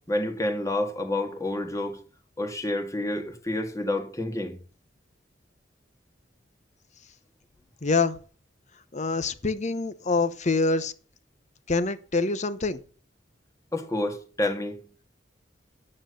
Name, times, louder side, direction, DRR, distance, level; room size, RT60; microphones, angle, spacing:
voice 1, 0.1-2.0 2.4-4.6 13.7-14.8, left 1 dB, 20° left, 1.8 m, -29 dB
voice 2, 7.8-8.2 8.9-10.9 11.7-12.8, left 3 dB, 40° left, 0.9 m, -25 dB
9.7 x 8.9 x 6.5 m
head